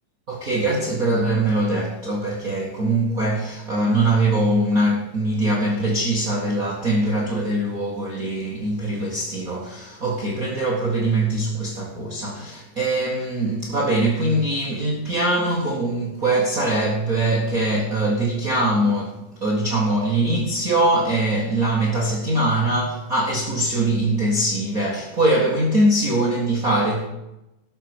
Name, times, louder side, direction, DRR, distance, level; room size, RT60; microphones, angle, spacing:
voice 1, 0.3-27.1, right 1 dB, 35° right, 1.8 m, -22 dB
17.5 x 6.8 x 6.2 m
omnidirectional pair, 3.7 m